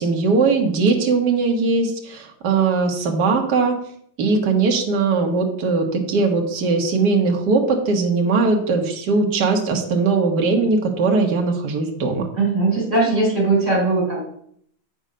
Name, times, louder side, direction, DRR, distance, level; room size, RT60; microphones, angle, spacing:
voice 1, 0.0-3.8 4.2-12.3, right 4 dB, 60° right, 1 dB, 1.8 m, -20 dB
voice 2, 12.3-14.2, right 3 dB, 35° right, -3 dB, 4.1 m, -19 dB
8.0 x 5.6 x 5.1 m, 0.66 s
omnidirectional pair, 2.1 m